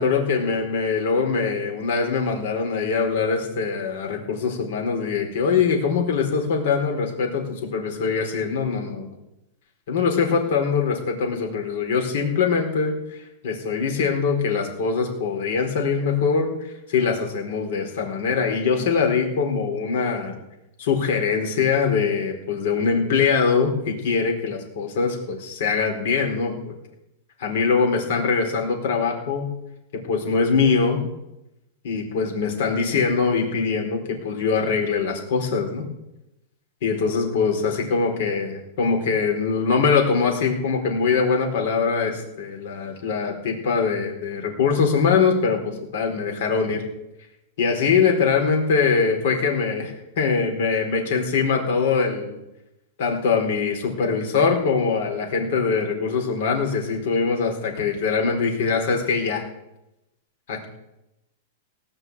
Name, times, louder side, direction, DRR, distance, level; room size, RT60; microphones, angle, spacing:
voice 1, 0.0-9.1 9.9-12.9 13.4-16.5 16.9-20.4 20.8-26.7 27.4-29.5 29.9-31.0 31.8-35.8 36.8-46.8 47.6-52.4 53.0-59.4 60.5-60.7, left 5 dB, 60° left, 2 dB, 4.4 m, -23 dB
18.0 x 6.2 x 9.3 m, 0.90 s
supercardioid pair, 160°, 0 cm